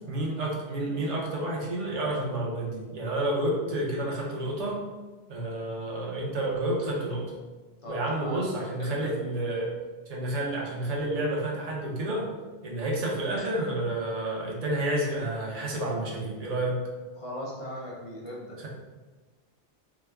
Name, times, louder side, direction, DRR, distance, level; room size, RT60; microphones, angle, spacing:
voice 1, 0.1-4.8 5.3-7.3 7.9-9.7 10.1-12.3 12.6-16.8, right 1 dB, 40° right, -3 dB, 0.7 m, -30 dB
voice 2, 7.8-8.5 8.8-9.1 17.2-18.6, left 1 dB, 40° left, -3 dB, 0.5 m, -38 dB
2.9 x 2.4 x 3.4 m, 1.3 s
omnidirectional pair, 1.2 m